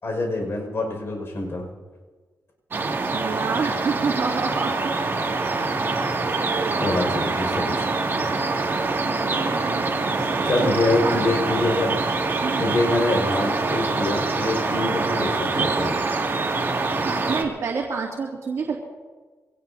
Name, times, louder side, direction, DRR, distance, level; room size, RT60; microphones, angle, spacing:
voice 1, 0.0-1.6 6.8-7.9 10.4-12.0 12.6-15.9, left 2 dB, 45° left, 1 dB, 5.7 m, -25 dB
sound 1, 2.7-17.4, right 3 dB, 40° right, 2.3 m, -25 dB
voice 2, 3.1-4.7 6.2-7.1 9.0-10.7 11.0-11.2 12.4-12.7 17.0-18.8, right 5 dB, 60° right, -2 dB, 2.5 m, -29 dB
24.5 x 18.5 x 2.8 m, 1.4 s
wide cardioid pair, 115°, 6 cm